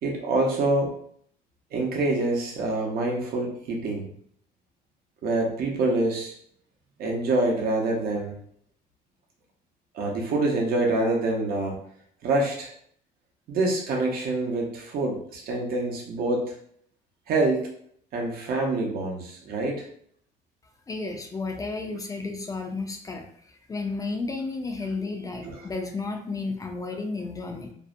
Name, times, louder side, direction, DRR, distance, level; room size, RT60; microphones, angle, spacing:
voice 1, 0.0-0.9 1.7-4.1 5.2-6.3 7.0-8.4 9.9-11.8 12.2-12.7 13.5-16.6 17.3-17.7 18.1-19.9 25.4-25.6, right 2 dB, 65° right, 0 dB, 0.7 m, -26 dB
voice 2, 20.9-27.7, left 3 dB, 20° left, 3 dB, 0.3 m, -32 dB
2.5 x 2.1 x 2.5 m, 0.63 s
cardioid pair, 110°, 17 cm